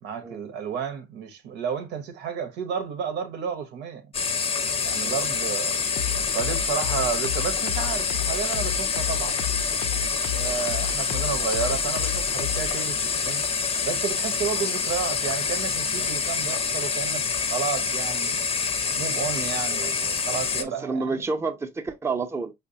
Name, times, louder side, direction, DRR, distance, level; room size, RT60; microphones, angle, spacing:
voice 1, 0.0-4.1 4.7-5.9 6.3-9.4 10.3-13.4 13.8-18.4 19.0-21.1, right 7 dB, 90° right, 0.8 m, -32 dB
sound 1, 4.1-20.6, left 5 dB, 35° left, 0.6 m, -27 dB
sound 2, 6.0-12.8, left 8 dB, 80° left, 0.5 m, -32 dB
voice 2, 20.6-22.5, right 4 dB, 15° right, 0.5 m, -29 dB
5.2 x 2.1 x 2.6 m
cardioid pair, 110°, 17 cm